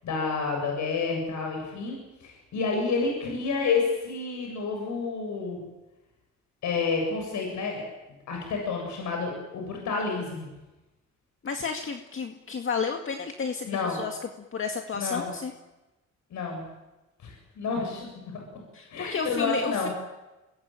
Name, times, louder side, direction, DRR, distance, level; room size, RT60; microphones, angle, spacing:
voice 1, 0.0-5.6 6.6-7.8 8.3-10.5 13.6-14.0 14.9-15.3 16.3-16.6 17.2-18.4 18.9-19.9, left 4 dB, 70° left, 1 dB, 8.0 m, -29 dB
voice 2, 11.4-14.2 14.5-15.5 18.7-19.9, left 5 dB, 45° left, 4 dB, 2.1 m, -31 dB
24.5 x 21.0 x 9.0 m, 1.0 s
cardioid pair, 90°, 30 cm